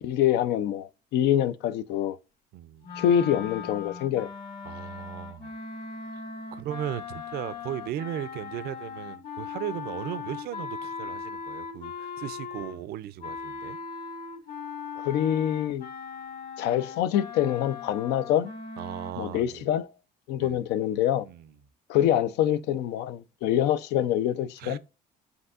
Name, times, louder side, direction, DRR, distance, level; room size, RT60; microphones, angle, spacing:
voice 1, 0.0-2.2 3.0-4.3 15.0-15.9 16.6-18.5 19.2-19.9 20.3-21.3 21.9-24.8, left 11 dB, 85° left, 0.5 m, -25 dB
voice 2, 2.5-3.0 4.6-5.5 6.5-13.8 18.8-19.6 20.4-20.6 21.3-21.5 24.6-24.8, right 11 dB, 70° right, 0.5 m, -37 dB
sound 1, 2.8-12.9 13.2-19.1, left 6 dB, 55° left, 2.1 m, -39 dB
7.9 x 2.7 x 2.4 m
cardioid pair, 110°, 17 cm